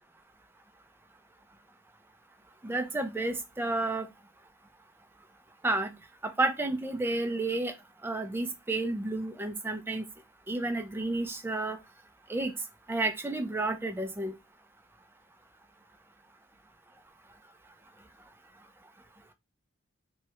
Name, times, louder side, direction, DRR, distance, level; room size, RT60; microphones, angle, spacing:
voice 1, 2.6-4.1 5.6-5.9 6.2-7.7 8.0-10.0 10.5-11.8 12.3-12.5 12.9-14.3, right 2 dB, 10° right, 0.3 m, -31 dB
3.1 x 2.3 x 2.8 m
head